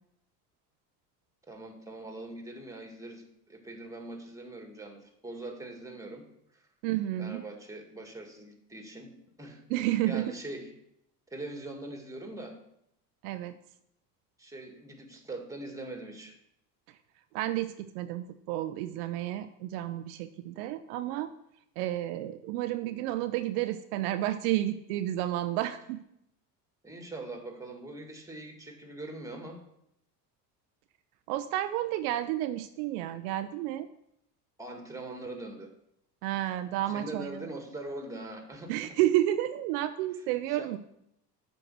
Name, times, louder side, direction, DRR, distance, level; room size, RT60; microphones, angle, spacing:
voice 1, 1.5-6.3 6.5-6.7 7.2-9.6 10.1-10.7 11.3-12.6 14.4-16.4 26.8-29.6 34.6-35.7 36.9-39.0 40.5-40.7, right 2 dB, 5° right, 3 dB, 1.9 m, -42 dB
voice 2, 6.8-7.4 9.7-10.3 13.2-13.6 17.3-21.3 21.8-26.0 31.3-33.9 36.2-37.5 38.7-40.8, right 14 dB, 70° right, 10 dB, 0.6 m, -31 dB
7.8 x 4.7 x 6.1 m, 0.77 s
hypercardioid pair, 75°, 48 cm